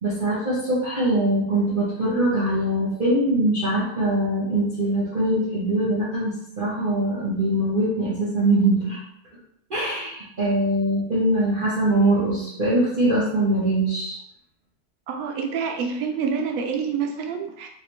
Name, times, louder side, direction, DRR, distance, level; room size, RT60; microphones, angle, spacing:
voice 1, 0.0-9.0 9.7-14.2, right 1 dB, 40° right, -8 dB, 0.9 m, -22 dB
voice 2, 15.1-17.7, right 6 dB, 70° right, 4 dB, 0.9 m, -27 dB
3.2 x 2.6 x 3.1 m, 0.71 s
omnidirectional pair, 1.7 m